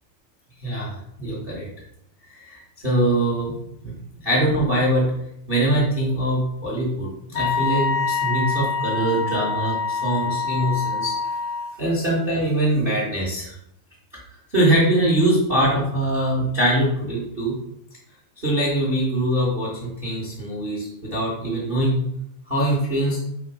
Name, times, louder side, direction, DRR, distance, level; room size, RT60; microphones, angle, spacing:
voice 1, 0.6-1.7 2.4-3.5 3.8-3.9 4.2-5.1 5.5-11.2 11.8-13.5 14.5-17.5 18.4-22.0 22.5-23.2, right 1 dB, 40° right, -5 dB, 0.7 m, -22 dB
Wind instrument woodwind instrument, 7.3-11.8, left 5 dB, 85° left, 2.6 m, -25 dB
7.7 x 3.0 x 5.0 m, 0.77 s
omnidirectional pair, 4.3 m